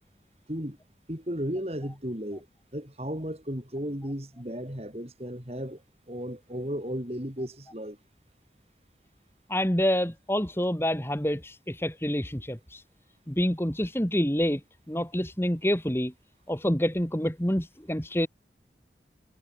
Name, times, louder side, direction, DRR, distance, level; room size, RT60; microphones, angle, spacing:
voice 1, 1.1-2.5 2.7-5.8 6.1-8.0, equal, 35° right, 4.7 m, -34 dB
voice 2, 9.5-12.8 13.3-14.6 14.9-16.1 16.5-18.3, equal, 15° left, 2.4 m, -27 dB
head